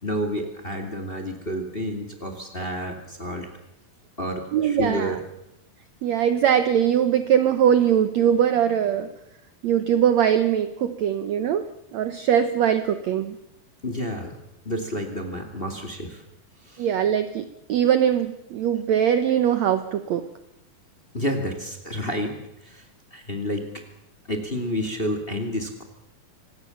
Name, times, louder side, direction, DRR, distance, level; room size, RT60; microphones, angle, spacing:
voice 1, 0.0-3.5 4.2-5.2 13.8-14.4 14.6-16.2 16.6-16.9 21.1-23.8 24.3-25.8, equal, 20° left, 6 dB, 2.1 m, -30 dB
voice 2, 4.5-5.2 6.0-9.1 9.6-11.6 11.9-13.4 16.8-20.3, right 9 dB, 70° right, 11 dB, 1.8 m, -21 dB
25.0 x 18.5 x 7.1 m, 0.84 s
omnidirectional pair, 4.2 m